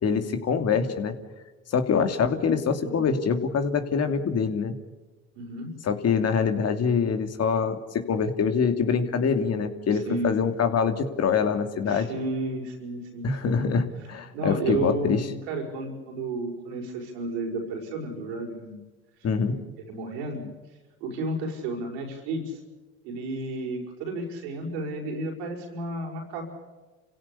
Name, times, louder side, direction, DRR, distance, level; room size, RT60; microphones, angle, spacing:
voice 1, 0.0-1.1 1.7-4.8 5.8-12.1 13.2-15.2 19.2-19.6, left 6 dB, 55° left, 7 dB, 2.8 m, -25 dB
voice 2, 2.8-3.1 5.4-5.7 9.9-10.4 11.9-13.7 14.3-18.8 19.2-19.6 19.9-20.5 21.0-22.6 23.0-26.5, right 2 dB, 90° right, 1 dB, 5.6 m, -32 dB
27.5 x 16.5 x 8.5 m, 1.2 s
hypercardioid pair, 65°, 30 cm